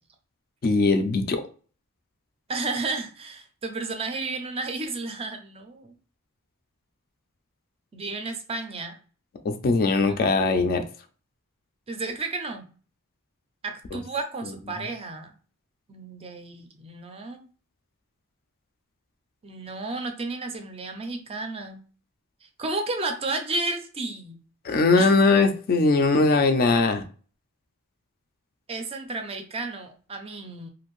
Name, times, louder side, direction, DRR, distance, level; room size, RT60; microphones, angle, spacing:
voice 1, 0.6-1.4 9.4-10.8 13.9-14.0 24.6-27.0, left 3 dB, 45° left, 8 dB, 0.3 m, -20 dB
voice 2, 2.5-5.9 7.9-9.0 11.9-12.7 13.6-15.4 15.9-17.5 19.4-21.8 22.4-24.4 25.0-25.1 28.7-30.7, right 3 dB, 25° right, 5 dB, 0.4 m, -32 dB
2.5 x 2.5 x 3.0 m, 0.39 s
head